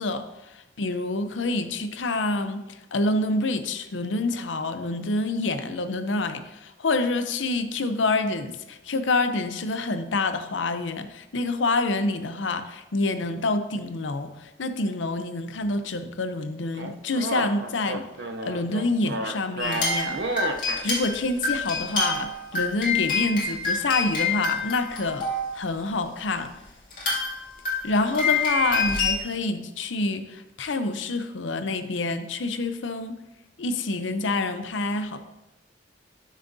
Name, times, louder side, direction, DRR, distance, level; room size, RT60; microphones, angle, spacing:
voice 1, 0.0-18.1 18.4-20.2 20.8-25.3 25.5-26.6 27.8-33.2 33.6-35.2, left 2 dB, 90° left, 0.7 m, -27 dB
sound 1, 16.7-20.8, right 2 dB, 65° right, 0.7 m, -31 dB
sound 2, 19.6-25.6 26.3-26.4 26.9-29.1, left 4 dB, 45° left, 2.5 m, -27 dB
12.5 x 6.3 x 2.7 m
head